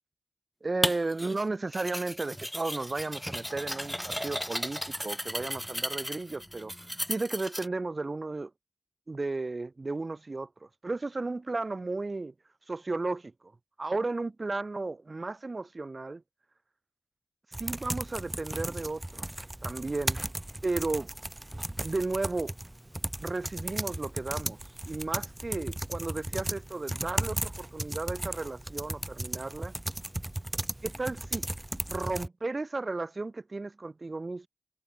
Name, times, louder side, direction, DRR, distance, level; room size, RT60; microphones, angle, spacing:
voice 1, 0.6-6.7 7.1-8.5 9.1-12.3 12.7-13.3 13.8-16.2 17.6-19.3 19.6-20.2 20.6-21.1 21.8-22.5 23.2-24.6 24.9-29.7 30.8-31.4 31.9-34.5, right 3 dB, 35° right, 3.2 m, -34 dB
sound 1, 0.8-1.4 1.7-7.7, equal, ahead, 1.9 m, -35 dB
sound 2, 17.5-32.3, right 1 dB, 15° right, 1.6 m, -36 dB
wide cardioid pair, 95°, 0 cm